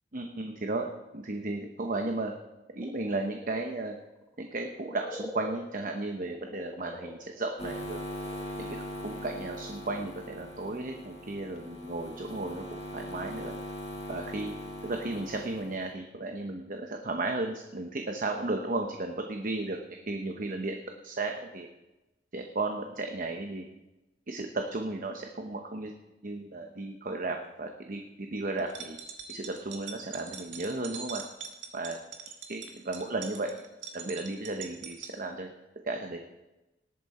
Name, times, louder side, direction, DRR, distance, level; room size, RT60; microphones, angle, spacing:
voice 1, 0.1-2.3 2.7-4.0 4.4-8.0 8.6-13.5 14.1-14.5 14.8-19.8 20.1-20.7 21.0-21.7 22.3-23.7 24.3-25.9 26.2-28.0 28.3-29.0 29.3-31.2 31.7-32.0 32.5-33.6 33.9-35.5 35.8-36.2, right 2 dB, 45° right, 4 dB, 0.9 m, -34 dB
sound 1, 2.8-8.5 8.8-8.9, left 1 dB, 15° left, 1.6 m, -45 dB
sound 2, 7.6-15.9, left 1 dB, 35° left, 2.0 m, -40 dB
sound 3, 28.6-35.1, right 6 dB, 80° right, 1.6 m, -43 dB
19.5 x 8.6 x 4.2 m, 1.0 s
head